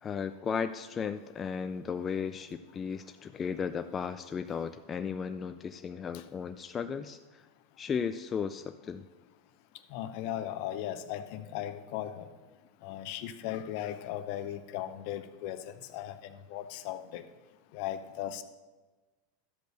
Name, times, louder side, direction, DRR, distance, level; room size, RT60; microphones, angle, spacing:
voice 1, 0.0-7.4 7.8-9.0, left 6 dB, 25° left, 9 dB, 0.4 m, -35 dB
voice 2, 9.9-12.3 12.8-15.6 15.9-17.2 17.7-18.4, left 11 dB, 60° left, 11 dB, 0.7 m, -37 dB
12.0 x 5.2 x 6.5 m, 1.3 s
hypercardioid pair, 110°, 0 cm